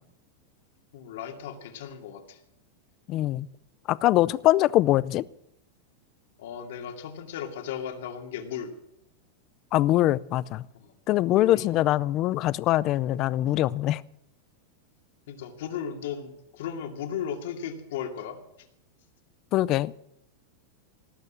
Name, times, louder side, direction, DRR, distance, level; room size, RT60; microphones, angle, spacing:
voice 1, 0.9-2.4 6.4-8.7 10.7-10.9 11.3-11.8 15.3-18.4, left 8 dB, 70° left, 2.4 m, -36 dB
voice 2, 3.1-3.5 3.9-5.2 9.7-10.6 11.1-14.0 19.5-20.0, left 15 dB, 35° left, 0.4 m, -23 dB
18.5 x 8.2 x 7.5 m
supercardioid pair, 160°, 0 cm